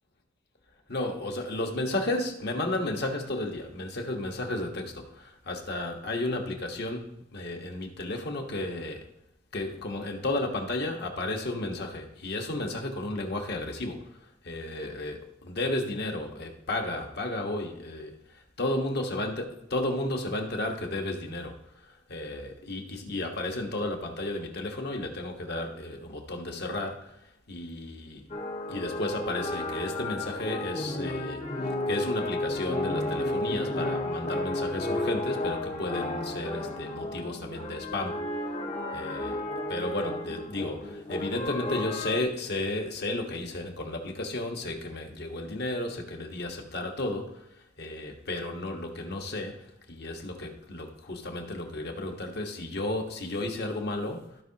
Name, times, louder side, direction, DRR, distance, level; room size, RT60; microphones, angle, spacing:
voice 1, 0.9-9.1 9.5-28.2 28.7-38.4 38.9-39.4 39.7-54.4, left 2 dB, 55° left, 2 dB, 1.4 m, -33 dB
sound 1, 28.3-42.2, left 1 dB, 35° left, 0.9 m, -33 dB
16.0 x 5.5 x 2.9 m, 0.82 s
head